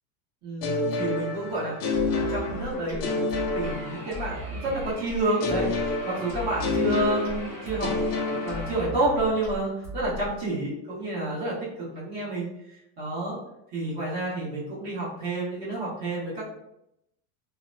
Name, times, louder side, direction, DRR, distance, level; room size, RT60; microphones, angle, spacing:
voice 1, 0.4-7.9 8.3-13.4 13.7-16.4, right 2 dB, 45° right, -9 dB, 1.3 m, -30 dB
sound 1, 0.6-4.5 5.4-9.3, left 3 dB, 40° left, 0.4 m, -29 dB
sound 2, 1.9-10.6, left 1 dB, 5° left, 0.7 m, -38 dB
sound 3, 3.6-8.9, right 2 dB, 65° right, 1.1 m, -44 dB
2.8 x 2.2 x 2.6 m, 0.82 s
supercardioid pair, 160°, 48 cm